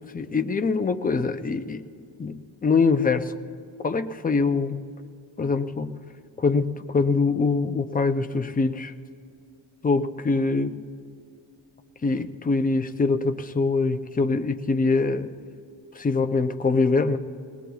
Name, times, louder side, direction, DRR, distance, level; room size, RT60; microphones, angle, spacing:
voice 1, 0.1-1.8 2.2-3.3 3.8-4.9 5.4-6.0 6.4-8.9 9.8-10.8 12.0-15.3 16.0-17.2, left 4 dB, 20° left, 8 dB, 0.4 m, -24 dB
21.0 x 18.5 x 2.3 m, 2.4 s
wide cardioid pair, 160°, 46 cm